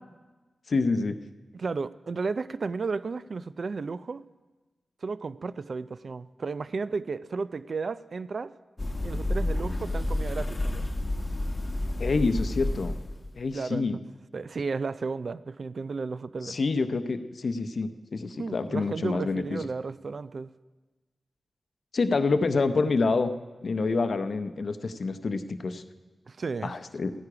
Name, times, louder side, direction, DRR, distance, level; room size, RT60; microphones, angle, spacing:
voice 1, 0.7-1.2 12.0-12.9 13.3-14.0 16.4-19.6 21.9-23.3 23.6-25.8 26.6-27.1, left 3 dB, 65° left, 10 dB, 0.6 m, -27 dB
voice 2, 1.5-4.3 5.0-8.5 9.0-10.9 13.5-13.9 14.3-16.6 18.4-20.5 26.3-26.8, right 4 dB, 65° right, 16 dB, 0.3 m, -33 dB
sound 1, 8.8-13.4, left 1 dB, 30° left, 1.1 m, -30 dB
15.0 x 9.8 x 4.8 m, 1.2 s
cardioid pair, 55°, 0 cm